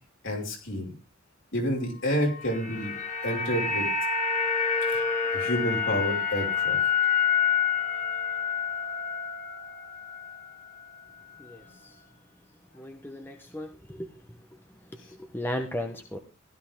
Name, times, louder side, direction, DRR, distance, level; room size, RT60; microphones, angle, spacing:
voice 1, 0.2-0.9 1.5-2.9 3.2-3.9 4.8-5.0 5.3-6.8, equal, 65° left, 0 dB, 5.5 m, -29 dB
sound 1, 2.2-10.5 10.8-10.9, left 6 dB, 35° left, 1.8 m, -28 dB
voice 2, 11.4-11.9 12.7-14.1 15.3-16.2, left 1 dB, 10° left, 3 dB, 1.1 m, -35 dB
16.0 x 12.5 x 3.8 m, 0.32 s
head